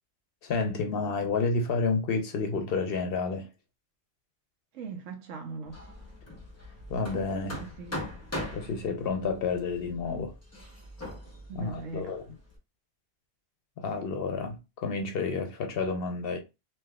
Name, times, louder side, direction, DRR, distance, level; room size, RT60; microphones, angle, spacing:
voice 1, 0.4-3.5 6.9-7.6 8.5-10.3 11.6-12.2 13.8-16.4, left 4 dB, 60° left, 0.7 m, -30 dB
voice 2, 4.7-5.8 7.6-8.0 11.5-12.2, right 5 dB, 90° right, 1.1 m, -40 dB
Hammer, 5.7-12.5, left 1 dB, 20° left, 0.5 m, -41 dB
3.3 x 2.6 x 2.3 m
omnidirectional pair, 1.2 m